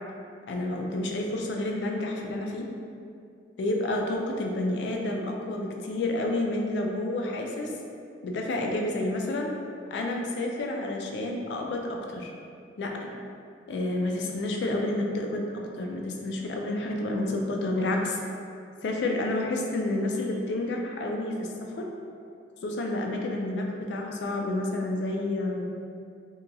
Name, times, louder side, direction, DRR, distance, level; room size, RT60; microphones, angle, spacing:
voice 1, 0.5-2.7 3.6-7.7 8.2-9.5 9.9-12.3 12.8-13.1 13.7-18.2 18.8-21.9 22.6-25.7, left 2 dB, 75° left, 0 dB, 0.4 m, -29 dB
2.9 x 2.3 x 2.5 m, 2.4 s
head